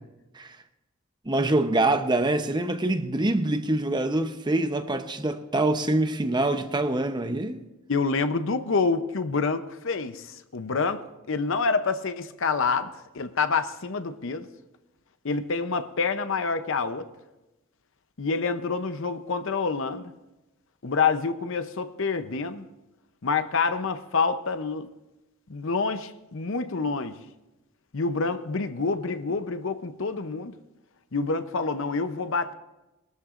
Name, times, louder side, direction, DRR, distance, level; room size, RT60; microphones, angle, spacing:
voice 1, 1.2-7.6, right 2 dB, 20° right, 0.8 m, -25 dB
voice 2, 7.9-14.5 15.2-17.1 18.2-20.1 20.8-22.6 23.2-24.9 25.5-27.1 27.9-30.5 31.1-32.5, left 4 dB, 60° left, 0.7 m, -27 dB
21.0 x 13.0 x 2.5 m
head